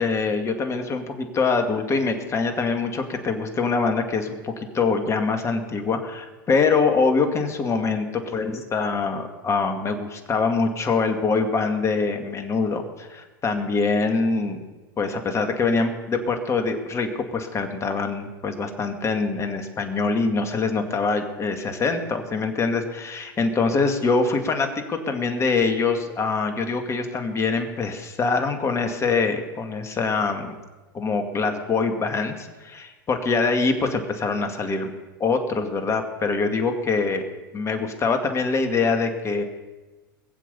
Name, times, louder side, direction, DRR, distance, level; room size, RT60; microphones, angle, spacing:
voice 1, 0.0-14.6 15.0-30.5 30.9-34.9 35.2-37.2 37.5-39.4, left 4 dB, 25° left, 6 dB, 2.2 m, -24 dB
21.5 x 7.6 x 7.1 m, 1.2 s
hypercardioid pair, 95°, 11 cm